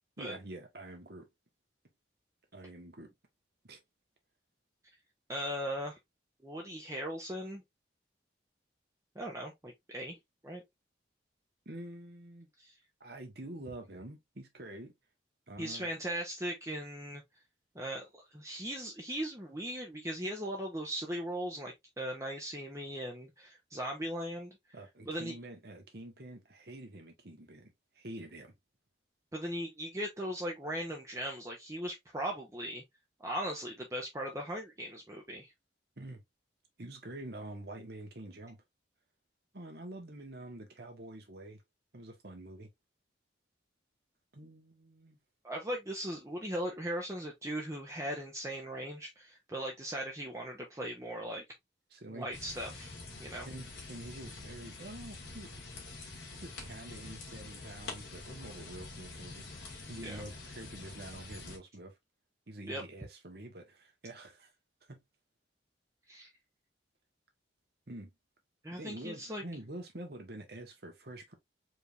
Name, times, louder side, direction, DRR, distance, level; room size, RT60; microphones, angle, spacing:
voice 1, 0.2-1.3 2.5-3.1 3.6-3.8 11.6-12.5 13.0-14.9 15.5-15.9 24.7-28.5 36.0-36.2 36.8-38.6 39.5-41.6 41.9-42.7 44.3-45.2 51.9-52.3 53.4-55.5 56.4-61.9 62.5-64.5 64.9-65.0 67.9-68.1 68.8-71.3, right 1 dB, 55° right, 1.3 m, -47 dB
voice 2, 5.3-6.0 6.4-7.6 9.1-10.2 10.4-10.6 12.6-12.7 15.6-17.2 17.7-24.6 25.1-25.3 29.3-32.8 33.2-35.5 45.4-51.4 52.1-53.5 60.0-60.2 62.6-62.8 66.1-66.3 68.6-69.4, equal, 15° right, 0.8 m, -38 dB
sound 1, 52.3-61.6, left 3 dB, 65° left, 1.9 m, -46 dB
4.4 x 3.5 x 2.6 m
head